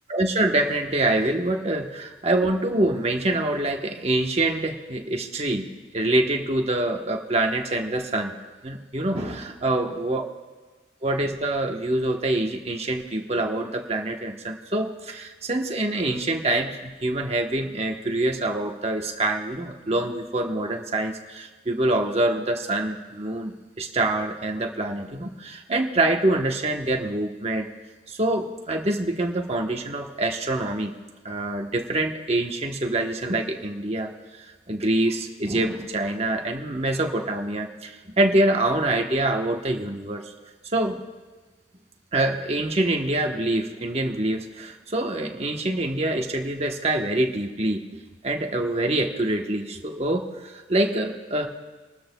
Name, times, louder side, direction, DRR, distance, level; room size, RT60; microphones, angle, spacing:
voice 1, 0.1-5.7 5.9-8.4 8.6-10.2 11.0-27.7 28.1-30.9 31.2-34.1 34.4-40.3 40.7-41.0 42.1-47.8 48.2-51.5, right 1 dB, 35° right, 2 dB, 1.1 m, -25 dB
28.0 x 13.0 x 2.3 m, 1.3 s
head